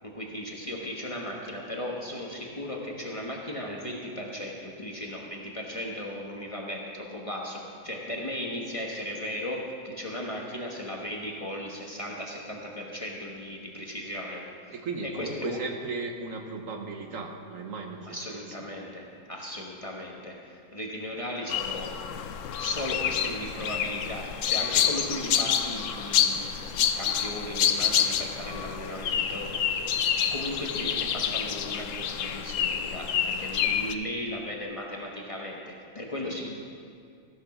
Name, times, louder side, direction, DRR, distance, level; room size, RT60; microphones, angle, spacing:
voice 1, 0.0-14.7 15.0-15.6 18.1-22.0 22.6-29.5 30.3-36.5, left 1 dB, 25° left, -2 dB, 1.1 m, -36 dB
voice 2, 14.7-18.4 36.2-36.3, right 4 dB, 65° right, 4 dB, 1.3 m, -36 dB
sound 1, 21.5-33.9, left 8 dB, 65° left, 0.9 m, -28 dB
15.0 x 6.4 x 6.0 m, 2.3 s
omnidirectional pair, 1.5 m